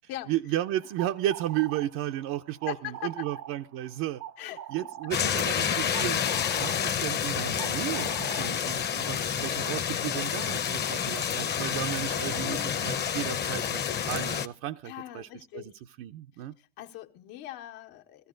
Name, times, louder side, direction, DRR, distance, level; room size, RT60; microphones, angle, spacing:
voice 1, 0.3-4.2 4.7-6.2 6.6-15.3 15.5-15.7 16.0-16.5, right 13 dB, 75° right, 0.7 m, -33 dB
sound 1, 0.8-9.6, right 11 dB, 40° right, 0.6 m, -44 dB
voice 2, 2.7-3.2 4.4-4.9 12.4-12.9 14.8-15.7 16.6-18.3, left 14 dB, 80° left, 1.5 m, -41 dB
sound 2, 5.1-14.5, left 8 dB, 30° left, 0.7 m, -29 dB
16.5 x 14.5 x 3.8 m
cardioid pair, 140°, 36 cm